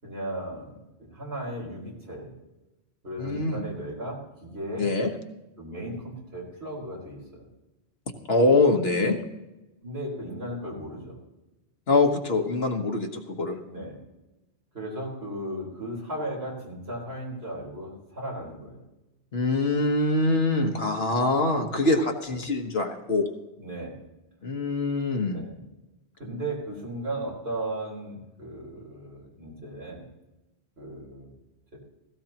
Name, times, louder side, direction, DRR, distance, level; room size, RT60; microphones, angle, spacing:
voice 1, 0.0-2.4 3.0-4.9 5.6-7.5 9.8-11.2 13.7-14.0 14.7-18.9 23.6-24.0 25.3-25.5 26.2-30.0 30.8-31.3 31.7-31.8, right 1 dB, 65° right, -3 dB, 4.5 m, -36 dB
voice 2, 3.2-3.6 4.8-5.1 8.3-9.2 11.9-13.6 19.3-23.3 24.4-25.4, left 2 dB, 65° left, 4 dB, 1.5 m, -24 dB
17.0 x 16.0 x 2.9 m, 1.0 s
omnidirectional pair, 1.1 m